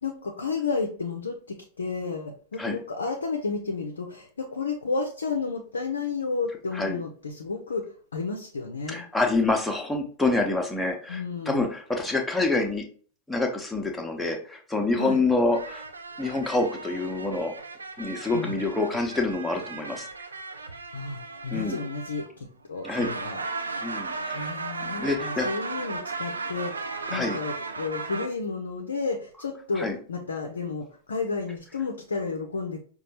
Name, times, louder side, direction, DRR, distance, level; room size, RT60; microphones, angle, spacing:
voice 1, 0.0-9.0 11.1-11.7 15.0-15.2 18.3-18.6 20.9-23.4 24.3-32.8, left 4 dB, 70° left, 2 dB, 0.4 m, -32 dB
voice 2, 8.9-12.8 13.3-15.8 16.2-17.5 18.0-20.1 21.5-21.8 22.8-23.2 23.8-24.5 25.0-25.5 27.1-27.4 29.8-30.0, left 2 dB, 5° left, 2 dB, 0.8 m, -27 dB
sound 1, 15.5-22.5 22.8-28.3, right 4 dB, 75° right, 0.4 m, -36 dB
5.1 x 2.3 x 2.8 m, 0.43 s
figure-of-eight pair, 90°, 0 cm